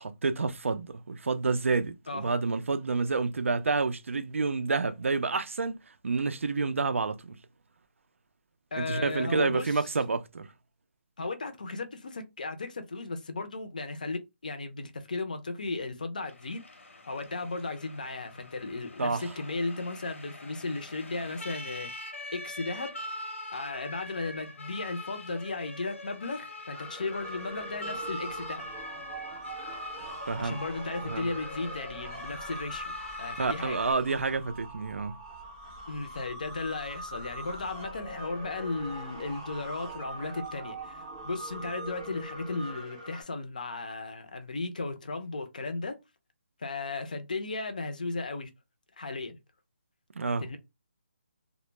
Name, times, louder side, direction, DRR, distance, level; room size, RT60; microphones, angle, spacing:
voice 1, 0.0-7.4 8.8-10.5 19.0-19.3 30.3-30.6 31.0-31.3 33.4-35.2 50.1-50.5, right 4 dB, 85° right, 0.4 m, -29 dB
voice 2, 8.7-9.7 11.2-16.6 17.1-21.9 22.3-22.9 23.5-28.6 30.4-32.9 33.2-33.8 35.9-46.0 46.6-48.5 49.0-49.4 50.4-50.6, left 3 dB, 40° left, 0.4 m, -35 dB
Siren, 16.3-33.9, left 2 dB, 85° left, 0.7 m, -43 dB
sound 1, 26.7-43.2, right 1 dB, 20° right, 0.5 m, -42 dB
2.0 x 2.0 x 3.1 m
hypercardioid pair, 180°, 7 cm